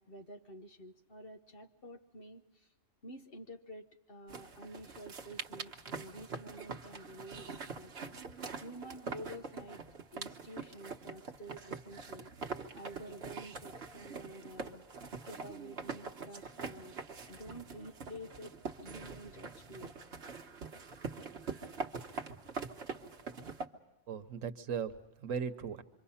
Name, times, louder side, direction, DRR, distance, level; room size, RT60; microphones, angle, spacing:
voice 1, 0.0-2.7 3.0-9.8 10.1-12.3 12.7-14.8 15.2-17.0 17.3-18.5 18.8-19.9, equal, 50° left, 5 dB, 1.2 m, -50 dB
sound 1, 4.3-23.7, right 4 dB, 55° right, 1.3 m, -44 dB
voice 2, 24.1-25.8, right 7 dB, 85° right, 10 dB, 1.4 m, -38 dB
27.0 x 24.0 x 5.7 m, 0.98 s
omnidirectional pair, 1.3 m